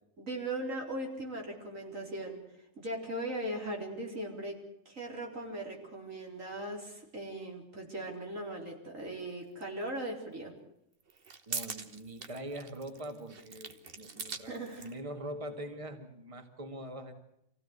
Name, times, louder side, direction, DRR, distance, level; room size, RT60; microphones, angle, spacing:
voice 1, 0.2-2.4 2.8-10.5 14.5-14.9, right 1 dB, 80° right, 1 dB, 4.5 m, -39 dB
sound 1, 9.6-9.7 11.0-15.0, right 5 dB, 50° right, 1.4 m, -42 dB
voice 2, 11.5-17.1, right 1 dB, 25° right, 6 dB, 1.9 m, -43 dB
25.5 x 16.0 x 8.1 m, 0.78 s
omnidirectional pair, 1.3 m